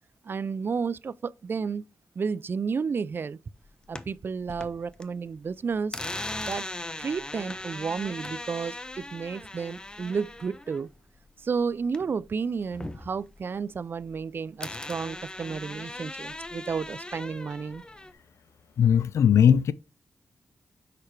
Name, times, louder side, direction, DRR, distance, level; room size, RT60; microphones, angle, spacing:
voice 1, 0.2-1.9 2.2-3.4 3.9-6.0 6.5-6.6 7.0-10.9 11.4-17.8, right 5 dB, 50° right, 0.4 m, -32 dB
sound 1, 3.6-5.1 5.4-12.3 12.6-14.2 14.6-18.1, left 1 dB, 15° left, 0.7 m, -39 dB
voice 2, 18.8-19.7, left 8 dB, 80° left, 0.4 m, -19 dB
6.7 x 5.6 x 3.2 m
cardioid pair, 70°, 5 cm